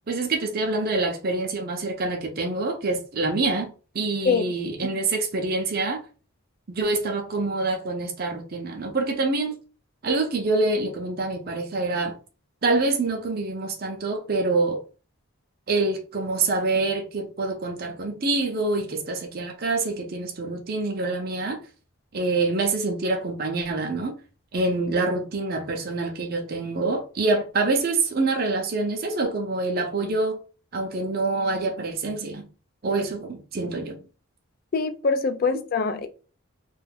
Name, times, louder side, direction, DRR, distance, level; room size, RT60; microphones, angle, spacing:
voice 1, 0.1-3.7 3.9-6.0 6.7-9.5 10.0-12.2 12.6-14.8 15.7-21.6 22.1-24.1 24.5-30.4 30.7-32.4 32.8-34.0, right 3 dB, 45° right, 0.5 m, -26 dB
voice 2, 34.7-36.1, left 4 dB, 45° left, 0.3 m, -23 dB
2.4 x 2.3 x 3.4 m
head